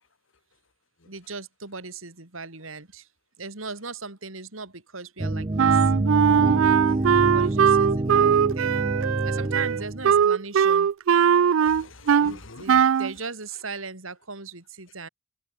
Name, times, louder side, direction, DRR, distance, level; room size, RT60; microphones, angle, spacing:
voice 1, 1.0-3.1 3.4-5.9 7.1-8.7 9.2-10.9 12.2-15.1, right 4 dB, 85° right, 3.9 m, -38 dB
sound 1, 5.2-10.2, right 2 dB, 25° right, 0.6 m, -26 dB
Wind instrument woodwind instrument, 5.6-12.4 12.7-13.1, right 8 dB, 70° right, 0.4 m, -20 dB
voice 2, 6.4-7.2 11.2-11.3 11.6-12.8, left 2 dB, 70° left, 2.1 m, -47 dB
head